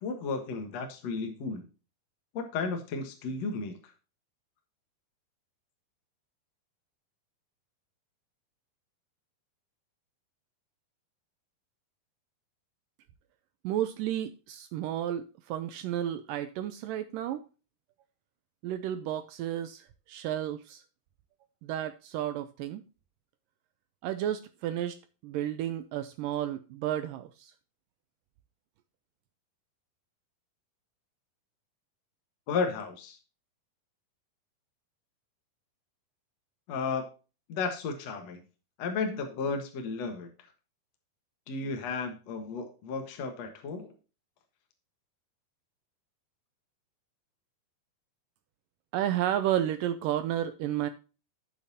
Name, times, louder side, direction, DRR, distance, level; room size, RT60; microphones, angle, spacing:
voice 1, 0.0-1.7 2.3-3.8 32.5-33.2 36.7-37.1 37.5-38.4 38.8-40.3 41.5-43.9, left 4 dB, 55° left, 2.0 m, -33 dB
voice 2, 13.6-17.5 18.6-20.8 21.6-22.8 24.0-25.0 25.2-27.5 48.9-50.9, right 11 dB, 85° right, 1.9 m, -32 dB
12.0 x 7.5 x 2.7 m
omnidirectional pair, 4.5 m